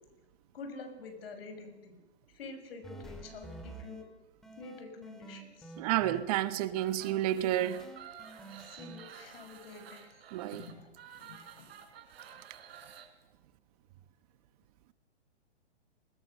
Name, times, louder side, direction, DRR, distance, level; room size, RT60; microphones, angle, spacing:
voice 1, 0.5-2.0 2.3-4.0 4.5-5.8 8.5-10.2 10.5-10.9 11.1-11.7, left 3 dB, 60° left, 6.2 m, -47 dB
sound 1, 2.8-4.0 4.4-6.2 7.0-7.2 7.6-9.0, right 2 dB, ahead, 3.1 m, -48 dB
voice 2, 5.8-7.8 10.3-10.6, right 13 dB, 35° right, 1.1 m, -30 dB
sound 2, 6.8-13.1, right 8 dB, 60° right, 4.0 m, -51 dB
29.5 x 21.0 x 6.6 m
hypercardioid pair, 140°, 34 cm